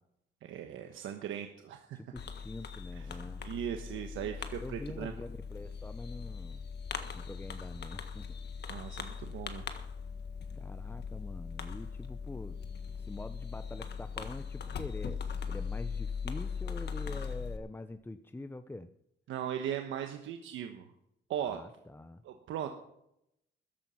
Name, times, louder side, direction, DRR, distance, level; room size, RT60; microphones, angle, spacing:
voice 1, 0.4-2.0 2.9-5.1 8.7-9.7 19.3-20.8 21.3-21.6 22.2-22.7, right 9 dB, 80° right, 5 dB, 1.2 m, -38 dB
voice 2, 1.9-3.4 4.6-6.6 7.1-8.4 10.5-12.6 12.9-15.2 15.5-18.9 21.5-22.2, left 2 dB, 10° left, 10 dB, 0.7 m, -45 dB
Fireworks, 2.2-17.6, left 6 dB, 55° left, 1.5 m, -40 dB
14.0 x 11.0 x 5.8 m, 0.79 s
cardioid pair, 90°, 20 cm